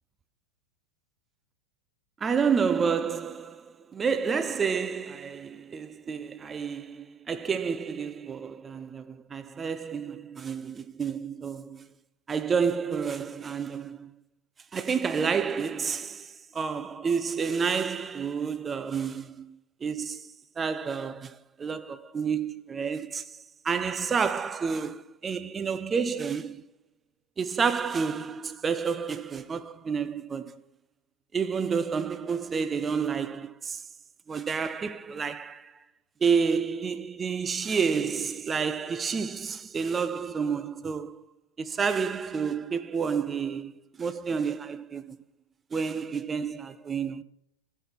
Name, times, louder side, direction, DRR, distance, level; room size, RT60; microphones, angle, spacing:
voice 1, 2.2-11.9 12.3-14.1 14.7-26.6 27.4-30.5 31.3-33.8 34.3-35.7 36.2-41.2 41.6-45.2 45.7-47.2, right 6 dB, 20° right, 0.4 m, -30 dB
12.5 x 5.5 x 4.2 m
figure-of-eight pair, 90°, 0 cm